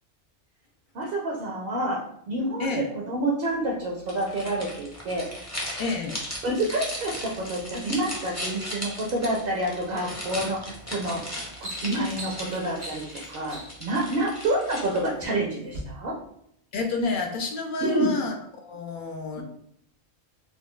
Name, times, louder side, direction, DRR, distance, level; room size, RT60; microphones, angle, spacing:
voice 1, 0.9-2.0 2.3-5.6 6.4-11.2 11.6-16.1 17.8-18.2 19.4-19.5, right 1 dB, 60° right, -2 dB, 0.8 m, -28 dB
sound 1, 4.1-15.2, equal, 20° left, 0.6 m, -37 dB
voice 2, 5.8-6.2 16.7-19.4, left 3 dB, 60° left, 3 dB, 0.6 m, -30 dB
sound 2, 10.7-10.9 11.3-13.9 14.7-15.3 15.7-15.8, right 1 dB, 85° right, 1.4 m, -41 dB
4.3 x 2.3 x 2.2 m, 0.71 s
omnidirectional pair, 1.2 m